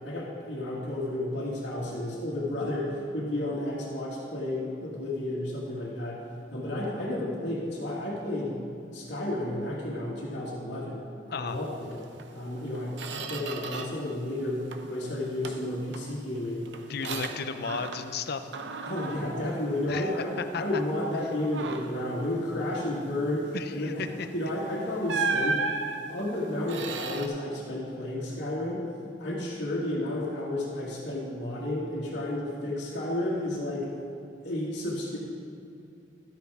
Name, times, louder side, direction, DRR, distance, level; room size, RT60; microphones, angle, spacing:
voice 1, 0.0-6.2 6.5-8.6 8.9-12.0 12.3-16.7 17.0-17.2 18.8-24.1 24.3-25.6 26.1-28.9 29.2-33.9 34.4-35.2, left 1 dB, 80° left, -8 dB, 1.8 m, -32 dB
Squeak, 12.2-12.3 12.7-14.1 14.4-15.0 15.4-18.2 18.5-20.4 20.8-21.0 21.4-22.1 24.2-24.4 25.1-27.3, right 4 dB, 85° right, 0.7 m, -35 dB
voice 2, 16.9-18.5 19.9-20.1 20.5-20.6 23.5-24.3, left 5 dB, 60° left, 10 dB, 0.5 m, -34 dB
13.0 x 9.1 x 3.5 m, 2.5 s
head